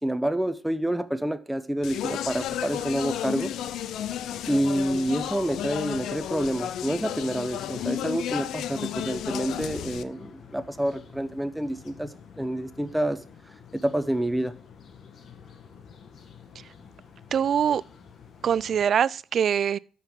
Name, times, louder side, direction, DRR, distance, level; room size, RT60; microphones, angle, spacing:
voice 1, 0.0-3.5 4.5-13.2 13.7-14.5, right 1 dB, 5° right, 0.7 m, -28 dB
Speech, 1.8-10.0, left 11 dB, 80° left, 0.5 m, -33 dB
sound 1, 2.1-18.9, left 6 dB, 60° left, 1.4 m, -49 dB
voice 2, 17.3-17.8 18.4-19.8, right 8 dB, 60° right, 0.3 m, -23 dB
12.5 x 5.8 x 3.7 m
cardioid pair, 90°, 0 cm